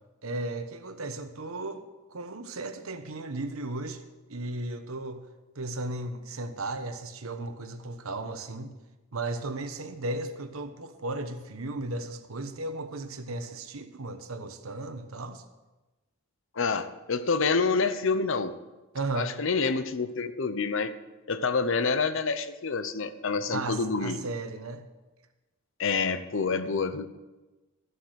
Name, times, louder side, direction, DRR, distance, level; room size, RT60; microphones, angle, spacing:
voice 1, 0.2-1.8 2.1-4.0 4.3-5.2 5.5-8.7 9.1-15.4 18.9-19.4 23.5-24.8, right 2 dB, 80° right, 8 dB, 1.1 m, -35 dB
voice 2, 16.6-18.5 19.1-20.9 21.3-24.2 25.8-27.1, left 4 dB, 65° left, 12 dB, 0.8 m, -27 dB
13.5 x 7.9 x 6.5 m, 1.1 s
head